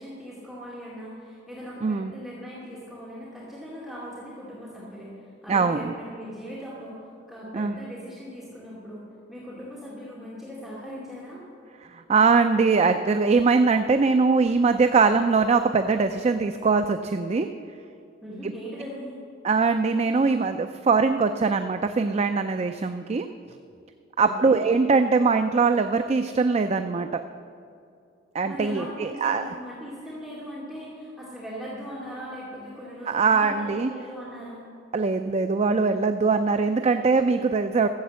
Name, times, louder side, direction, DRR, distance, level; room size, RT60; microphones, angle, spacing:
voice 1, 0.0-5.1 5.4-7.0 7.3-9.0 9.3-11.4 18.2-19.2 24.2-24.7 28.5-34.6, equal, ahead, -9 dB, 2.4 m, -39 dB
voice 2, 1.8-2.1 5.5-5.9 7.5-7.7 11.9-17.5 18.4-18.5 19.4-23.3 24.2-27.2 28.3-29.5 33.1-33.9 34.9-37.9, right 4 dB, 35° right, 8 dB, 0.4 m, -22 dB
13.5 x 8.0 x 7.5 m, 2.5 s
head